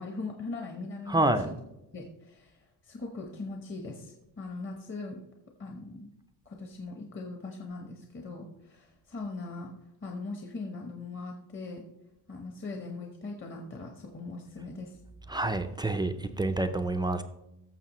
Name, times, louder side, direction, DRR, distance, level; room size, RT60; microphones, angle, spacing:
voice 1, 0.0-1.5 1.9-5.2 5.6-6.1 6.4-9.7 10.0-11.9 12.3-15.0, left 3 dB, 30° left, 2 dB, 0.9 m, -40 dB
voice 2, 1.1-1.5 15.3-17.2, right 2 dB, 10° right, 7 dB, 0.3 m, -28 dB
15.0 x 6.7 x 3.0 m, 0.89 s
cardioid pair, 150°, 41 cm